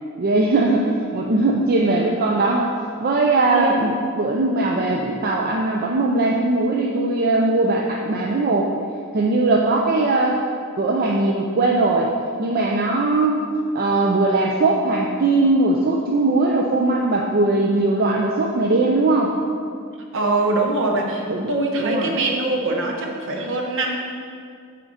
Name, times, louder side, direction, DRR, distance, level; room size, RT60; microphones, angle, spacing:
voice 1, 0.2-2.7 3.0-8.7 9.1-10.4 10.8-12.1 12.4-13.5 13.7-19.3 21.3-21.5 21.8-22.2, right 2 dB, 45° right, -1 dB, 0.4 m, -20 dB
voice 2, 3.5-3.9 20.1-24.0, right 2 dB, 60° right, 1 dB, 0.9 m, -23 dB
6.3 x 4.4 x 4.9 m, 2.2 s
head